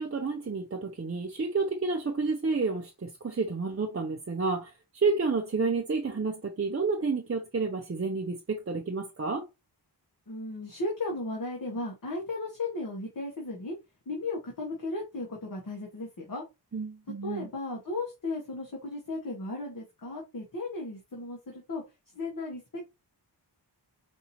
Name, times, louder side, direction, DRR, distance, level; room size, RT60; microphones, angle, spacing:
voice 1, 0.0-4.7 5.0-9.4 16.7-17.5, right 4 dB, 35° right, 0.7 m, -30 dB
voice 2, 10.3-13.7 14.1-16.4 17.2-21.8 22.1-22.8, left 2 dB, 50° left, 1.3 m, -35 dB
5.0 x 2.7 x 2.8 m
wide cardioid pair, 90°, 42 cm